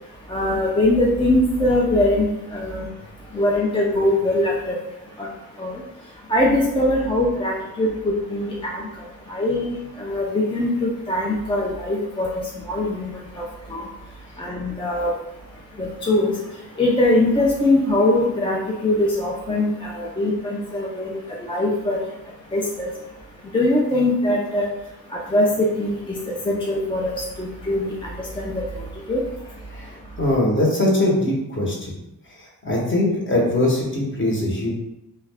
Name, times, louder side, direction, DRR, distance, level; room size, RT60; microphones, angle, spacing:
voice 1, 0.3-2.9 3.3-4.8 5.2-5.3 5.6-5.8 6.3-8.8 9.3-12.3 12.7-13.4 13.7-13.8 14.4-15.1 15.8-16.3 16.8-21.2 21.5-22.0 22.5-22.9 23.5-24.7 25.1-27.9 28.2-28.6 29.1-29.2, left 1 dB, 15° left, -3 dB, 0.3 m, -22 dB
voice 2, 30.2-31.9 32.6-34.7, left 1 dB, 30° left, -2 dB, 0.8 m, -21 dB
2.3 x 2.1 x 3.3 m, 0.90 s
cardioid pair, 75°, 38 cm